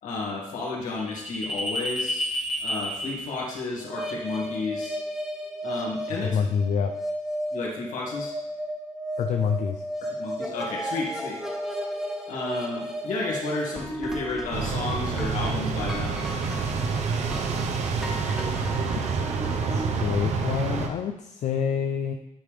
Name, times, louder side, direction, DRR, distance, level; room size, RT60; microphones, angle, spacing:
voice 1, 0.0-2.3 2.6-5.0 5.6-6.4 7.5-8.3 10.2-11.4 12.3-16.2, left 3 dB, 85° left, -3 dB, 2.3 m, -32 dB
sound 1, 1.0-19.9, equal, 5° right, 1.0 m, -34 dB
voice 2, 6.2-7.0 9.2-9.8 19.7-22.1, left 6 dB, 70° left, 5 dB, 0.5 m, -27 dB
sound 2, 14.5-20.9, right 5 dB, 60° right, 0.8 m, -28 dB
10.0 x 3.7 x 5.0 m, 0.87 s
wide cardioid pair, 180°, 13 cm